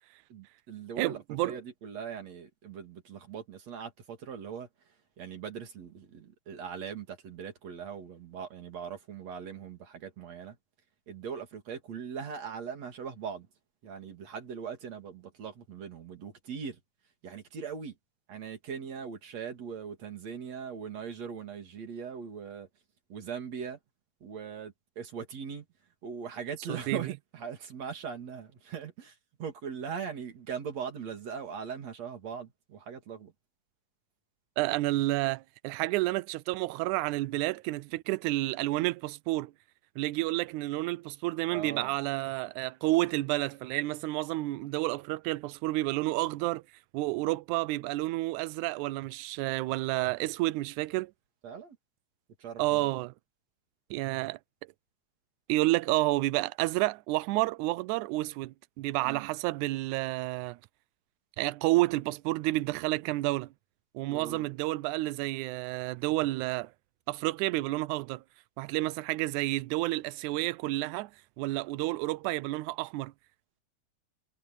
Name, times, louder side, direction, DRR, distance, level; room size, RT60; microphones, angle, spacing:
voice 1, 0.3-10.6 11.1-13.5 13.8-16.8 17.2-18.0 18.3-22.7 23.1-23.8 24.2-25.7 26.0-33.3 41.5-42.0 51.4-51.8 52.4-52.9 59.0-59.3 64.0-64.5, right 7 dB, 60° right, 4.0 m, -40 dB
voice 2, 1.0-1.6 26.7-27.0 34.6-39.5 40.0-46.6 46.9-51.1 52.6-53.1 53.9-54.4 55.5-60.6 61.4-63.5 63.9-66.7 67.1-68.2 68.6-71.1 71.4-73.1, right 19 dB, 80° right, 2.0 m, -30 dB
omnidirectional pair, 3.5 m